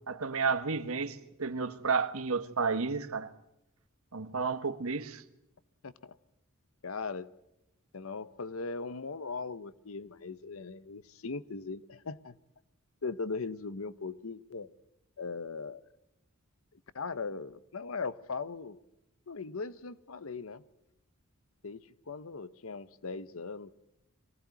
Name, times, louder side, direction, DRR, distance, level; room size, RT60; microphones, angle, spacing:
voice 1, 0.1-3.3 4.1-5.2, right 4 dB, 85° right, 1.4 m, -31 dB
voice 2, 5.8-6.2 6.8-7.3 7.9-12.4 13.0-14.7 15.2-15.8 16.7-18.8 19.3-20.6 21.6-23.7, left 4 dB, 75° left, 0.9 m, -39 dB
23.5 x 18.0 x 9.4 m
head